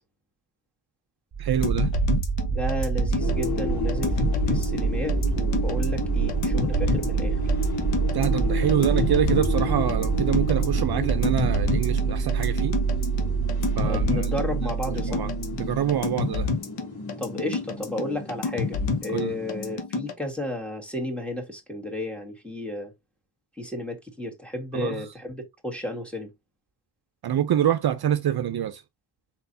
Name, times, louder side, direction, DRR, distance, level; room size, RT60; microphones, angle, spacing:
sound 1, 1.3-16.1, right 5 dB, 45° right, 1.0 m, -26 dB
voice 1, 1.4-1.9 8.1-12.8 13.8-14.3 15.1-15.3 15.6-16.5 19.1-19.3 24.7-25.0 27.2-28.8, right 10 dB, 60° right, 0.6 m, -26 dB
sound 2, 1.6-20.1, left 4 dB, 80° left, 1.1 m, -29 dB
voice 2, 2.5-7.4 13.8-15.2 17.2-22.9 23.6-26.3, left 1 dB, 5° left, 1.8 m, -33 dB
sound 3, 3.2-19.8, left 4 dB, 60° left, 2.7 m, -34 dB
4.3 x 3.9 x 2.7 m
cardioid pair, 75°, 43 cm